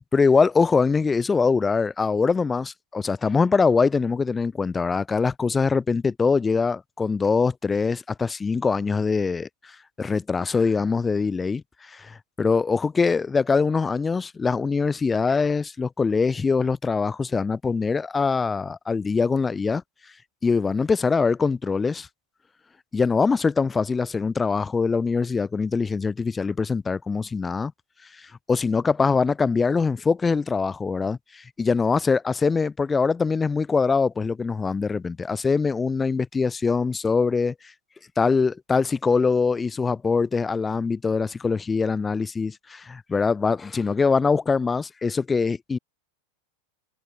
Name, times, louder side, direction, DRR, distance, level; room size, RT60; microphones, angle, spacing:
voice 1, 0.1-19.8 20.4-22.1 22.9-27.7 28.1-37.7 38.2-45.8, left 4 dB, 15° left, 0.4 m, -23 dB
figure-of-eight pair, 90°, 0 cm